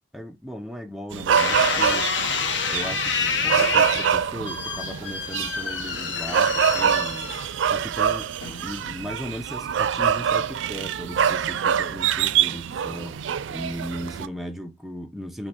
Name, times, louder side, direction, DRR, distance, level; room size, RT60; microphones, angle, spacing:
voice 1, 0.1-2.1 2.7-7.3 7.7-8.3 8.6-13.2 13.5-15.5, equal, ahead, 0.3 m, -36 dB
sound 1, 1.1-14.3, right 8 dB, 85° right, 0.4 m, -25 dB
sound 2, 1.4-7.8 8.4-8.9, left 5 dB, 80° left, 0.8 m, -28 dB
5.1 x 2.9 x 2.8 m
head